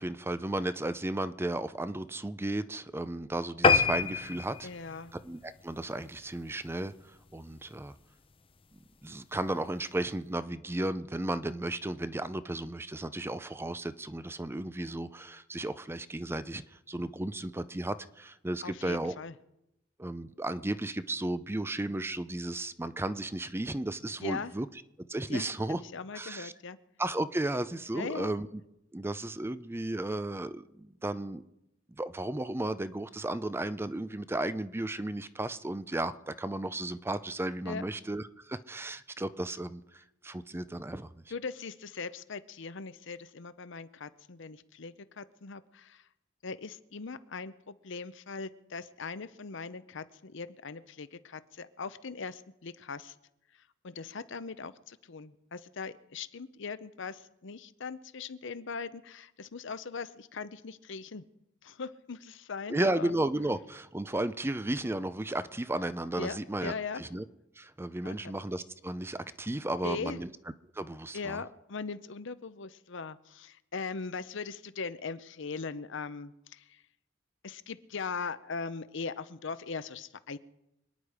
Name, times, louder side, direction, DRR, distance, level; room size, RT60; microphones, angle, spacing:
voice 1, 0.0-4.7 5.1-7.9 9.0-19.2 20.0-24.7 25.1-25.8 26.1-26.5 27.0-28.5 28.9-31.4 32.0-41.1 62.7-67.2 67.6-70.3 70.8-71.4, right 1 dB, 10° right, 0.5 m, -34 dB
sound 1, 3.6-6.4 6.9-7.1 7.5-7.6 7.9-8.0 8.2-8.3, left 5 dB, 30° left, 0.6 m, -27 dB
voice 2, 4.6-5.1 18.6-19.3 24.2-24.5 25.3-25.5 25.9-26.8 27.9-28.3 37.7-37.8 41.3-46.0 46.4-53.1 53.8-61.2 61.6-63.1 66.2-67.0 68.0-68.2 69.8-70.2 71.1-76.8 77.4-80.4, left 4 dB, 70° left, 0.8 m, -40 dB
26.0 x 9.9 x 5.0 m
head